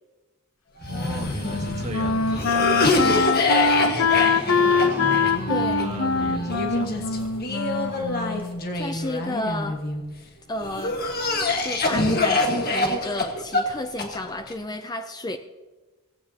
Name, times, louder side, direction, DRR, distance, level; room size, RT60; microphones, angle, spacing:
Cough, 0.8-10.0 10.6-14.5, left 2 dB, 45° left, 1.6 m, -26 dB
voice 1, 0.8-3.2 3.6-4.8 5.3-7.4 7.7-8.4, right 2 dB, 35° right, 1 dB, 2.0 m, -37 dB
Wind instrument woodwind instrument, 0.9-8.7, left 4 dB, 75° left, 0.8 m, -23 dB
Motorcycle, 3.0-8.9, right 1 dB, 10° right, 0.9 m, -38 dB
voice 2, 5.5-6.0 8.7-9.8 10.5-11.0 11.6-15.4, left 1 dB, 20° left, 8 dB, 0.5 m, -32 dB
18.0 x 15.5 x 2.9 m, 1.2 s
head